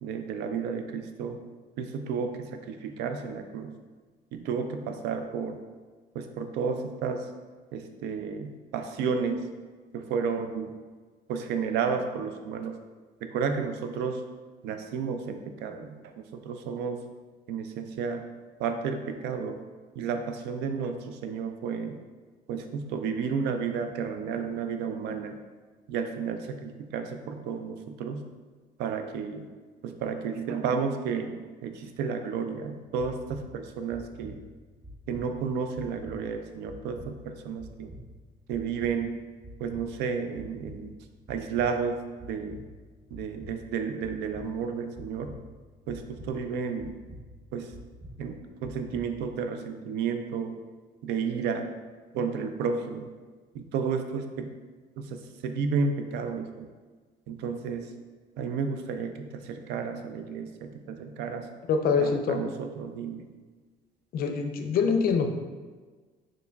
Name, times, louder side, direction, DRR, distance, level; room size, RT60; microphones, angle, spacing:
voice 1, 0.0-1.4 1.8-3.8 4.3-5.6 6.1-7.3 7.7-9.5 9.9-10.7 11.3-12.7 13.2-14.2 14.6-17.0 17.5-18.3 18.6-19.6 20.0-22.0 22.5-25.4 25.9-28.3 28.8-29.5 29.8-34.4 35.1-37.9 38.5-39.2 39.6-40.9 41.3-42.6 43.1-45.4 45.9-46.9 47.5-47.7 48.2-48.3 48.6-50.6 51.0-51.7 52.1-53.1 53.5-54.5 55.0-56.7 57.3-57.9 58.4-61.5 61.9-63.3, right 5 dB, 85° right, 6 dB, 0.4 m, -32 dB
sound 1, 32.9-49.5, equal, 5° right, 0.5 m, -48 dB
voice 2, 61.7-62.4 64.1-65.3, left 5 dB, 60° left, 5 dB, 0.4 m, -25 dB
4.4 x 3.1 x 2.2 m, 1.4 s
cardioid pair, 110°, 17 cm